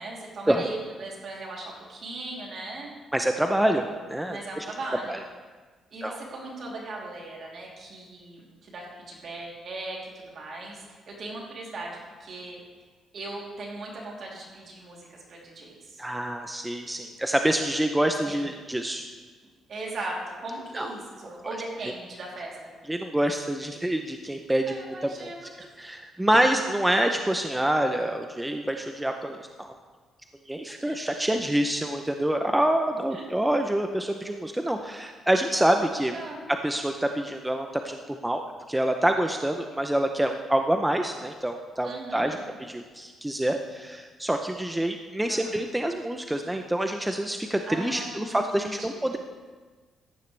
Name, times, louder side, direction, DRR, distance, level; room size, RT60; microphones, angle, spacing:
voice 1, 0.0-2.9 4.3-5.2 5.9-12.6 13.1-16.0 18.2-18.4 19.7-22.7 24.7-25.5 26.3-26.4 30.8-31.2 33.1-33.3 36.1-36.4 41.8-42.5 45.3-45.6 47.7-49.1, right 2 dB, 55° right, -3 dB, 3.2 m, -38 dB
voice 2, 3.1-4.7 5.1-5.2 6.0-6.2 16.0-19.0 20.7-20.9 22.9-25.3 25.8-29.7 30.5-36.1 36.6-38.4 38.7-49.2, right 1 dB, 10° right, 5 dB, 0.7 m, -26 dB
15.0 x 10.0 x 3.4 m, 1.4 s
cardioid pair, 90°, 0 cm